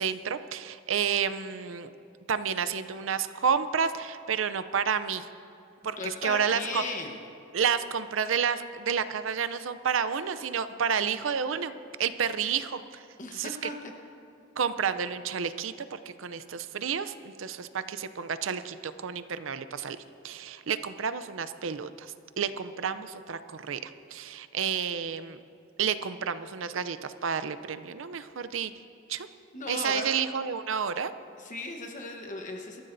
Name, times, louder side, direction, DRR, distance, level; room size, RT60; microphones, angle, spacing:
voice 1, 0.0-1.9 2.3-5.3 5.8-6.8 7.5-11.7 12.0-13.0 13.3-13.7 14.6-20.0 20.2-25.4 25.8-28.7 29.1-29.3 29.7-31.1, right 7 dB, 75° right, 12 dB, 0.6 m, -30 dB
voice 2, 6.0-7.2 13.2-13.8 29.5-30.1 31.4-32.8, left 2 dB, 40° left, 2 dB, 1.1 m, -37 dB
23.5 x 14.0 x 2.7 m, 2.5 s
head